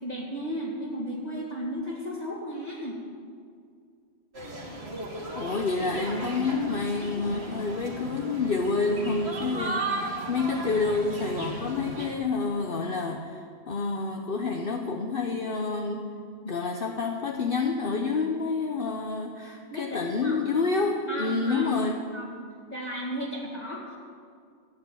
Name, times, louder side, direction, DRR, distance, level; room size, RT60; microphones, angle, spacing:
voice 1, 0.0-3.0 19.7-20.4 21.1-21.7 22.1-22.3 22.7-24.0, equal, 35° left, -6 dB, 2.4 m, -34 dB
sound 1, 4.3-12.1, right 2 dB, 60° right, 2.4 m, -35 dB
voice 2, 5.3-16.1 16.4-22.1, left 4 dB, 50° left, 2 dB, 1.0 m, -28 dB
14.5 x 8.6 x 8.9 m, 2.2 s
omnidirectional pair, 1.2 m